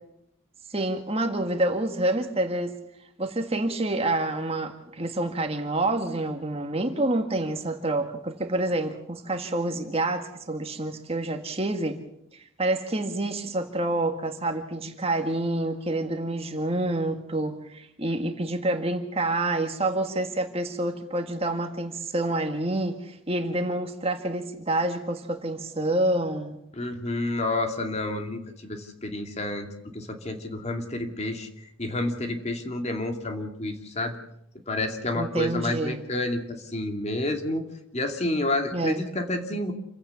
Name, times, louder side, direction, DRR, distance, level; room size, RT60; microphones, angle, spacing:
voice 1, 0.7-2.7 3.2-12.0 12.6-26.6 35.1-36.0 38.7-39.0, right 2 dB, 30° right, 1.8 m, -28 dB
voice 2, 26.7-29.7 29.9-34.2 34.7-37.6 37.9-39.7, left 2 dB, 30° left, 2.5 m, -29 dB
28.0 x 16.5 x 7.0 m
head